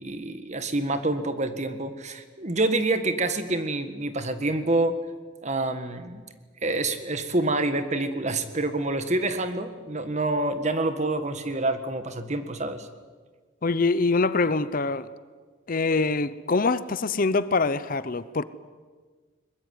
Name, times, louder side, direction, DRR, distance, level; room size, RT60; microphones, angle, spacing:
voice 1, 0.0-5.0 5.4-6.2 6.6-12.9, right 2 dB, 35° right, 9 dB, 1.7 m, -27 dB
voice 2, 13.6-15.1 15.7-18.4, left 3 dB, 45° left, 15 dB, 0.7 m, -24 dB
22.0 x 20.5 x 9.7 m, 1.5 s
head